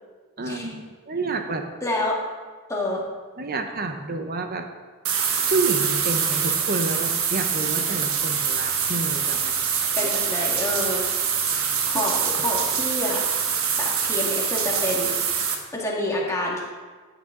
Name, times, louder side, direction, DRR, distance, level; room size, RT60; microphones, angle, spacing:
voice 1, 0.4-1.7 3.4-4.7 5.5-10.1 11.9-12.0, right 3 dB, 45° right, 5 dB, 0.9 m, -29 dB
voice 2, 1.8-2.2 2.7-3.1 10.0-11.1 11.5-13.2 13.8-15.3 15.7-16.6, left 1 dB, 15° left, -3 dB, 2.0 m, -28 dB
sound 1, 5.0-15.5, right 7 dB, 70° right, 1.4 m, -24 dB
14.0 x 9.2 x 3.9 m, 1.4 s
head